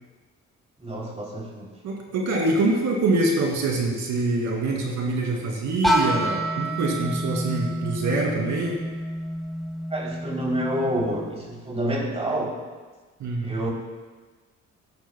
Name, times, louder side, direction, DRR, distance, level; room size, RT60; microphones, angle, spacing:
voice 1, 0.8-1.7 9.9-12.6 13.4-13.7, right 1 dB, 20° right, -2 dB, 3.0 m, -28 dB
voice 2, 1.8-8.8 13.2-13.6, right 2 dB, 75° right, -1 dB, 2.5 m, -25 dB
sound 1, 5.8-11.6, right 1 dB, ahead, 1.4 m, -28 dB
14.5 x 11.5 x 2.2 m, 1.4 s
cardioid pair, 90°, 30 cm